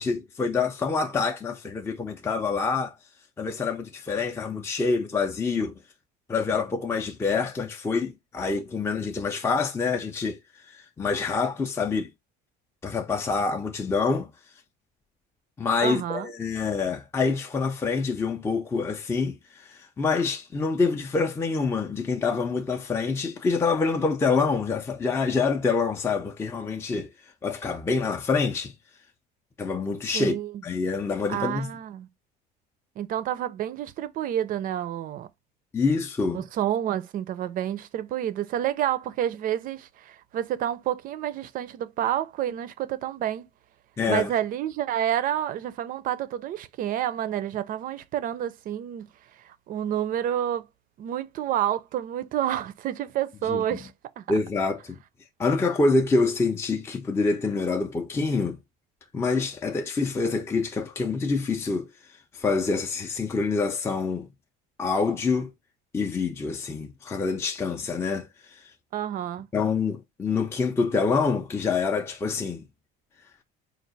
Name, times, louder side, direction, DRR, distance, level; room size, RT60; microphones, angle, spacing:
voice 1, 0.0-2.9 3.4-5.8 6.3-10.4 10.7-12.1 12.8-14.3 15.6-27.1 27.4-28.7 29.6-30.4 30.6-31.7 35.7-36.4 44.0-44.3 53.5-53.6 54.3-55.0 55.4-58.6 59.1-61.9 62.3-64.3 64.8-65.5 65.9-68.6 69.5-72.6, left 4 dB, 15° left, 0.5 m, -26 dB
voice 2, 15.8-16.3 30.1-30.5 31.3-32.1 33.0-35.3 36.3-43.4 44.1-49.1 49.4-50.7 51.0-54.2 68.9-69.5, right 11 dB, 45° right, 0.5 m, -29 dB
4.5 x 2.4 x 3.9 m
cardioid pair, 130°, 20 cm